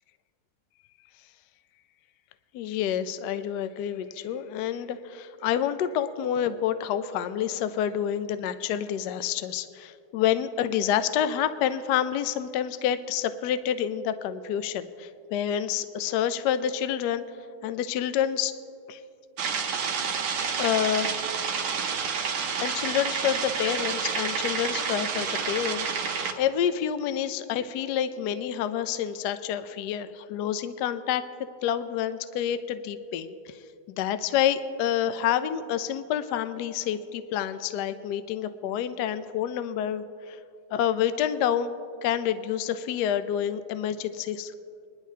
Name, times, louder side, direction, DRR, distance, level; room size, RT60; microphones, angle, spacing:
voice 1, 2.5-17.2 17.6-18.5 18.9-19.0 20.6-21.1 22.6-25.9 26.4-31.3 31.6-33.6 34.0-40.4 40.7-41.7 42.0-44.5, left 9 dB, 85° left, 12 dB, 0.9 m, -28 dB
sound 1, 19.4-26.3, right 6 dB, 90° right, 1.9 m, -29 dB
21.5 x 11.5 x 2.8 m, 2.6 s
omnidirectional pair, 2.4 m